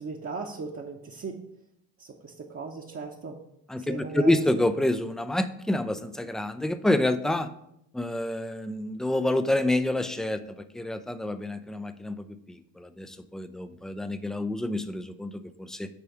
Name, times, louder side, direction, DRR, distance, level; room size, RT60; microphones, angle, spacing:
voice 1, 0.0-1.3 2.0-3.4 3.8-4.4, right 4 dB, 30° right, -1 dB, 0.9 m, -37 dB
voice 2, 3.7-7.5 7.9-10.4 10.7-15.9, left 1 dB, ahead, 11 dB, 0.4 m, -28 dB
8.5 x 3.4 x 4.8 m, 0.78 s
hypercardioid pair, 60°, 43 cm